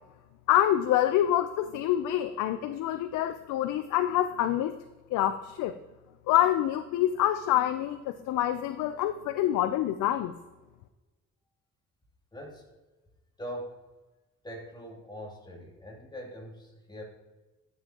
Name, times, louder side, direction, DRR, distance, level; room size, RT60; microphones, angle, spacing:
voice 1, 0.5-4.8 5.1-5.8 6.3-10.3, left 12 dB, 90° left, 10 dB, 0.5 m, -26 dB
voice 2, 12.3-12.7 13.4-13.8 14.4-17.0, equal, 15° left, -1 dB, 2.6 m, -42 dB
12.0 x 7.3 x 2.9 m, 1.2 s
cardioid pair, 90°, 30 cm